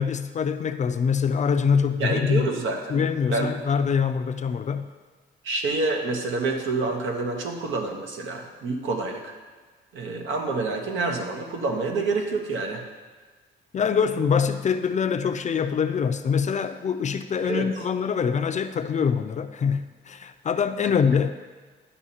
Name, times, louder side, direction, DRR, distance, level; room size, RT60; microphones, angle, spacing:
voice 1, 0.0-2.5 2.9-4.9 13.7-21.3, left 6 dB, 35° left, 9 dB, 0.4 m, -24 dB
voice 2, 2.0-3.0 3.3-3.5 5.4-9.2 9.9-12.8 17.4-17.7, right 3 dB, 80° right, 2 dB, 1.1 m, -27 dB
11.0 x 5.5 x 2.9 m, 1.4 s
cardioid pair, 90°, 20 cm